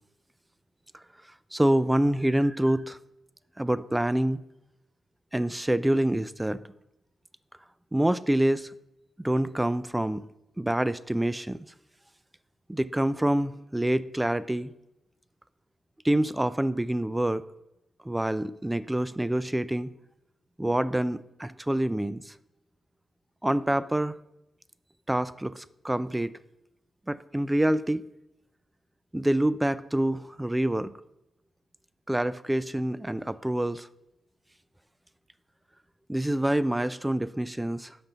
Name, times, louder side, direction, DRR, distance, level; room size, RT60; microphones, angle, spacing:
voice 1, 1.5-3.0 3.6-4.4 5.3-6.6 7.9-8.7 9.2-10.2 10.6-11.6 12.7-14.7 16.0-17.4 18.0-19.9 20.6-22.3 23.4-24.2 25.1-26.3 27.1-28.1 29.1-30.9 32.1-33.9 36.1-38.0, right 1 dB, 10° right, 17 dB, 0.3 m, -26 dB
6.0 x 5.1 x 6.7 m, 0.90 s
cardioid pair, 65°, 0 cm